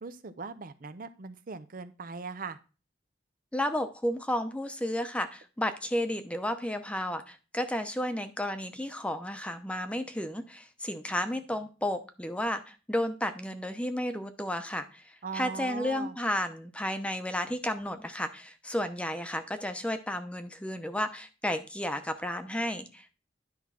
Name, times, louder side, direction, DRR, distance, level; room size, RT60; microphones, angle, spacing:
voice 1, 0.0-2.6 15.2-16.2, right 4 dB, 50° right, 12 dB, 0.6 m, -39 dB
voice 2, 3.5-23.2, left 1 dB, 5° left, 9 dB, 0.8 m, -32 dB
10.5 x 3.6 x 5.8 m, 0.33 s
head